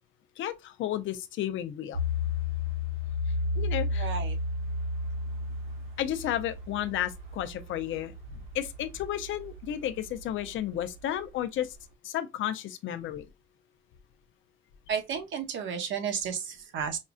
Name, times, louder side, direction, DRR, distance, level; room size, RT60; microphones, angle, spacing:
voice 1, 0.4-2.0 3.6-4.1 6.0-8.1 8.5-11.8 12.0-13.2, left 11 dB, 80° left, 0.6 m, -32 dB
sound 1, 1.9-11.3 11.7-11.8, left 2 dB, 90° right, 1.7 m, -33 dB
voice 2, 4.0-4.4 14.9-17.0, right 7 dB, 75° right, 1.0 m, -32 dB
5.2 x 2.5 x 2.3 m
cardioid pair, 90°, 20 cm